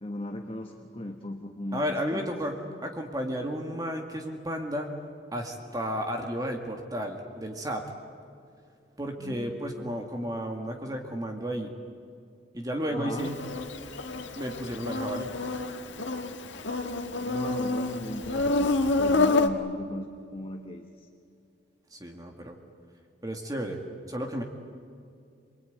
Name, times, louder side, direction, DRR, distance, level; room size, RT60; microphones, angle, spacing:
voice 1, 0.0-2.3 9.2-9.9 12.9-13.3 17.2-21.1, left 1 dB, 30° left, 4 dB, 1.2 m, -38 dB
voice 2, 1.7-2.6 2.8-4.9 5.3-7.8 9.0-11.7 12.5-13.3 14.3-15.3 21.9-22.6 23.2-23.8 24.1-24.4, equal, 20° right, 2 dB, 2.0 m, -32 dB
Insect, 13.2-19.5, left 3 dB, 80° left, 1.8 m, -28 dB
28.0 x 21.5 x 9.4 m, 2.4 s
head